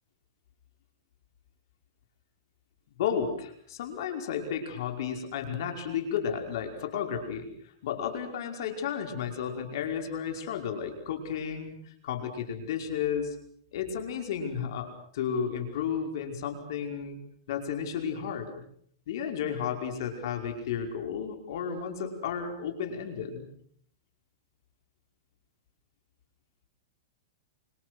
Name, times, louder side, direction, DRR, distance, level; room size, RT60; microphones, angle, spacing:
voice 1, 3.0-11.8 12.0-13.4 13.7-17.2 17.5-18.6 19.1-23.5, left 7 dB, 65° left, 4 dB, 5.4 m, -33 dB
26.0 x 26.0 x 6.4 m, 0.64 s
hypercardioid pair, 145°, 2 cm